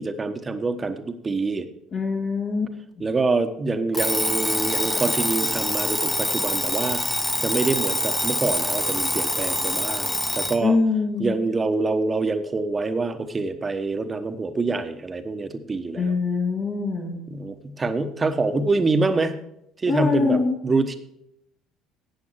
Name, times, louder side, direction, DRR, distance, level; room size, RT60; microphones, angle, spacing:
voice 1, 0.0-1.7 3.0-10.8 11.2-16.0 17.3-19.3 19.8-20.4 20.6-21.0, right 3 dB, 25° right, 9 dB, 1.2 m, -25 dB
voice 2, 1.9-3.1 10.6-11.4 15.9-17.2 19.9-20.6, left 4 dB, 45° left, -3 dB, 2.1 m, -24 dB
Alarm, 3.9-10.6, left 1 dB, 5° left, 0.9 m, -25 dB
13.5 x 9.1 x 4.5 m, 0.79 s
figure-of-eight pair, 55°, 0 cm